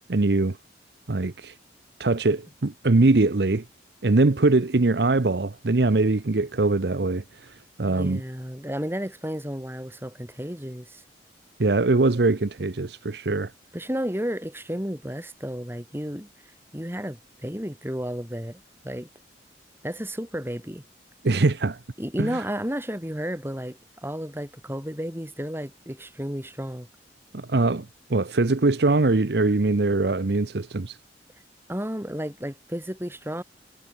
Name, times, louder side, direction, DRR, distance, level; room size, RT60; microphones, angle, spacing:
voice 1, 0.1-0.6 1.1-1.5 2.0-3.6 4.0-8.2 11.6-13.5 21.2-21.8 22.2-22.4 27.3-31.0, right 2 dB, 60° right, 0.8 m, -22 dB
voice 2, 7.8-11.0 13.7-16.3 16.7-19.1 19.8-20.8 22.0-26.9 31.7-33.4, equal, 15° right, 6.8 m, -32 dB
head